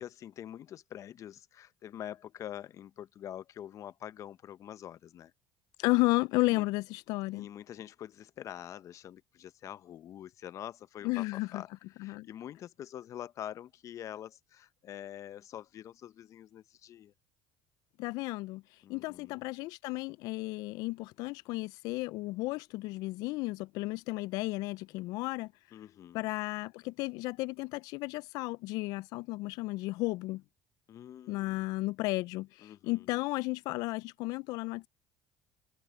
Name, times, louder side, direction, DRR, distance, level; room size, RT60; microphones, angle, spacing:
voice 1, 0.0-5.3 6.5-6.7 7.3-11.7 12.0-17.1 18.8-19.4 25.7-26.2 30.9-31.7 32.6-33.2, left 11 dB, 50° left, 1.0 m, -45 dB
voice 2, 5.8-7.5 11.0-11.6 12.0-12.3 18.0-25.5 26.1-30.4 31.3-34.9, left 22 dB, 70° left, 0.3 m, -33 dB
supercardioid pair, 80°, 7 cm